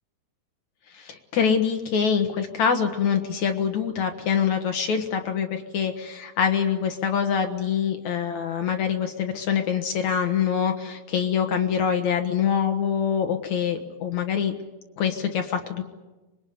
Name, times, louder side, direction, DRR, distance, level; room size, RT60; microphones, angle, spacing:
voice 1, 0.9-14.5 15.0-15.8, left 7 dB, 60° left, 5 dB, 1.9 m, -25 dB
26.0 x 22.0 x 9.6 m, 1.1 s
omnidirectional pair, 5.5 m